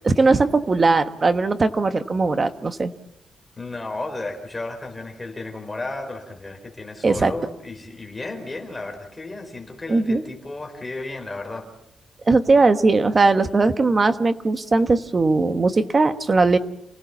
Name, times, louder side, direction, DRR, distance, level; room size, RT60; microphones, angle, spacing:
voice 1, 0.0-2.9 7.0-7.3 9.9-10.2 12.3-16.6, right 3 dB, 25° right, 10 dB, 1.2 m, -19 dB
voice 2, 3.6-11.7, left 2 dB, 15° left, 3 dB, 4.6 m, -33 dB
29.0 x 17.0 x 7.2 m, 0.77 s
wide cardioid pair, 175°, 0 cm